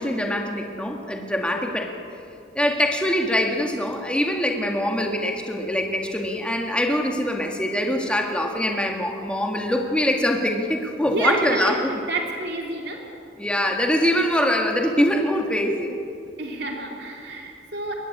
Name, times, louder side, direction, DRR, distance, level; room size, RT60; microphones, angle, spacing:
voice 1, 0.0-1.9 2.5-12.0 13.4-16.0, left 1 dB, 5° left, 2 dB, 1.9 m, -23 dB
voice 2, 11.1-11.8 12.1-13.0 16.4-18.0, right 2 dB, 65° right, 1 dB, 3.1 m, -29 dB
21.5 x 18.5 x 8.6 m, 2.6 s
head